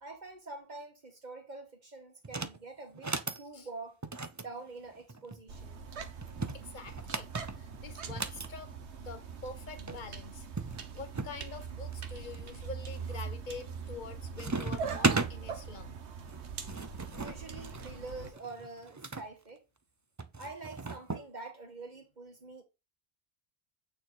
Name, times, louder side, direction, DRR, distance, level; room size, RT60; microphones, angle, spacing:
voice 1, 0.0-3.1 3.4-4.0 4.4-5.9 17.2-19.6 20.4-22.6, right 3 dB, 40° right, 1.8 m, -46 dB
sound 1, 2.2-2.6 2.9-3.4 4.0-5.4 6.2-8.5 9.6-9.7 9.9-10.0 10.6-11.4 11.9-12.4 13.0-13.3 13.7-14.1 14.4-15.3 16.3-19.2 20.2-21.3, right 3 dB, 25° right, 0.4 m, -36 dB
sound 2, 5.5-18.3, right 6 dB, 85° right, 1.3 m, -42 dB
voice 2, 6.5-10.4 10.9-16.0, left 4 dB, 45° left, 1.3 m, -46 dB
8.7 x 4.4 x 4.0 m
omnidirectional pair, 1.1 m